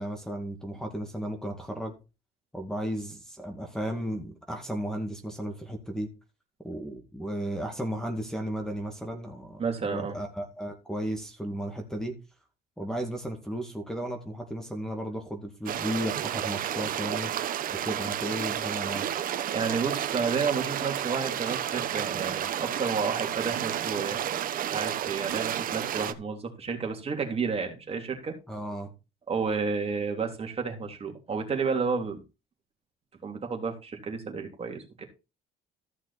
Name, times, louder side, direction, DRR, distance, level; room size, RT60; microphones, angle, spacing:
voice 1, 0.0-1.9 2.5-6.1 6.6-12.2 12.8-17.3 17.8-19.1 28.5-28.9, equal, 5° left, 4 dB, 2.2 m, -34 dB
voice 2, 9.6-10.2 19.5-24.2 24.7-28.3 29.3-32.2 33.2-35.0, right 5 dB, 35° right, 3 dB, 3.1 m, -31 dB
sound 1, 15.7-26.1, right 10 dB, 55° right, 1.1 m, -31 dB
14.5 x 6.0 x 4.2 m, 0.29 s
cardioid pair, 110°, 17 cm